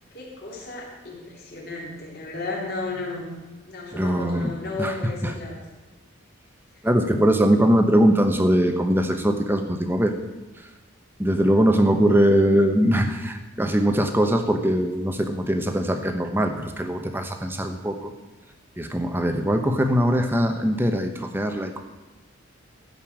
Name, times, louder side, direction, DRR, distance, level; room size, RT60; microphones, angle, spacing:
voice 1, 0.1-3.3 3.6-5.6 6.8-6.9, left 3 dB, 45° left, -3 dB, 3.3 m, -34 dB
voice 2, 3.9-4.5 4.8-4.9 5.2-5.3 6.8-10.1 11.2-18.1 18.8-21.8, equal, 10° right, 6 dB, 0.9 m, -21 dB
15.0 x 5.4 x 7.4 m, 1.2 s
head